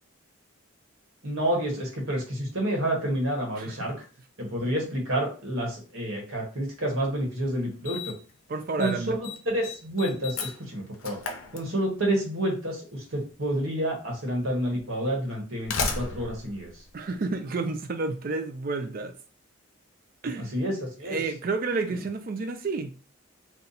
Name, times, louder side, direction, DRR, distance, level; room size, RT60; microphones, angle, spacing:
voice 1, 1.2-3.9 4.4-8.1 8.8-9.2 9.4-11.2 11.5-16.8 20.4-21.2, right 1 dB, 75° right, 1.2 m, -29 dB
Slam, 7.0-7.1 7.8-8.3 8.6-8.9 9.2-12.2 13.3-13.4 14.3-14.4 15.3-17.7, left 4 dB, 85° left, 0.6 m, -34 dB
voice 2, 8.5-9.2 16.9-19.1 20.2-20.5 21.0-22.9, right 3 dB, 45° right, 0.4 m, -30 dB
2.7 x 2.3 x 3.9 m
head